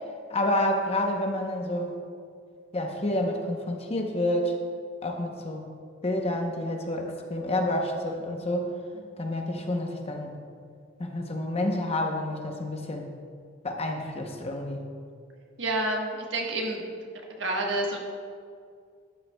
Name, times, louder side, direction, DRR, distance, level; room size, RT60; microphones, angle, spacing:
voice 1, 0.3-1.9 2.7-4.6 5.0-5.7 6.0-8.7 9.2-10.4 11.0-13.1 13.6-14.9, left 1 dB, 30° left, 3 dB, 0.8 m, -29 dB
voice 2, 15.6-16.9 17.4-18.0, right 2 dB, 70° right, 0 dB, 1.3 m, -29 dB
12.5 x 9.0 x 2.2 m, 2.2 s
head